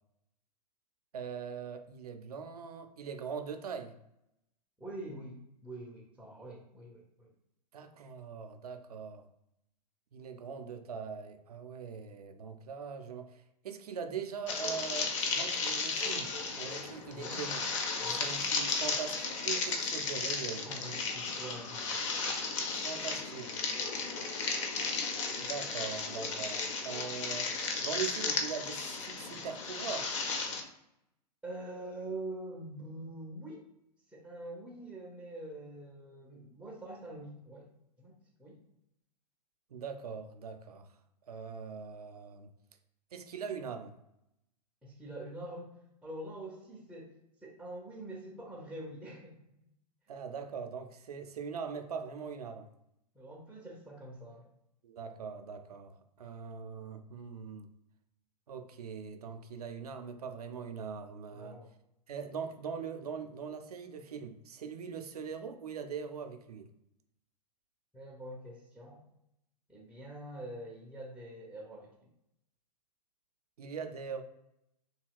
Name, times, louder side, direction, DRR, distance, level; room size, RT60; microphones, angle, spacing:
voice 1, 1.1-3.9 7.7-9.3 10.1-17.6 18.1-20.7 22.8-23.6 25.4-27.5 27.8-30.1 39.7-40.9 41.3-42.5 43.1-43.9 50.1-52.7 54.8-57.7 58.5-61.6 62.1-66.7 73.6-74.2, right 6 dB, 65° right, 7 dB, 0.4 m, -41 dB
voice 2, 4.8-7.3 17.1-17.4 18.0-18.3 20.6-22.7 23.6-23.8 31.4-33.6 34.1-37.7 38.0-38.6 44.8-45.8 46.0-47.1 47.4-49.4 53.1-54.5 61.3-61.7 67.9-69.0 69.7-71.9, right 1 dB, 5° right, -4 dB, 0.4 m, -45 dB
sound 1, 14.5-30.6, left 4 dB, 50° left, 0.6 m, -34 dB
2.8 x 2.7 x 2.3 m, 0.82 s
figure-of-eight pair, 105°, 21 cm